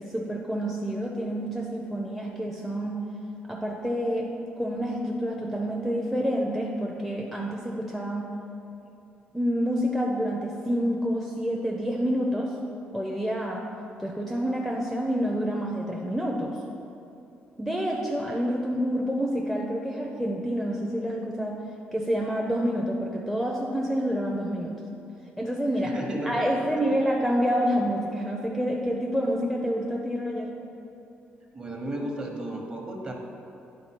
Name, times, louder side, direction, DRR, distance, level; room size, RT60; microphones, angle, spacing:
voice 1, 0.0-3.0 3.5-4.3 4.6-8.3 9.3-12.6 12.9-13.7 14.0-16.6 17.6-21.6 21.9-24.8 25.4-25.9 26.2-30.5, equal, ahead, -1 dB, 0.5 m, -28 dB
voice 2, 25.8-27.0 31.5-33.1, right 1 dB, 25° right, 1 dB, 0.9 m, -34 dB
9.5 x 3.5 x 4.4 m, 2.8 s
cardioid pair, 130°, 4 cm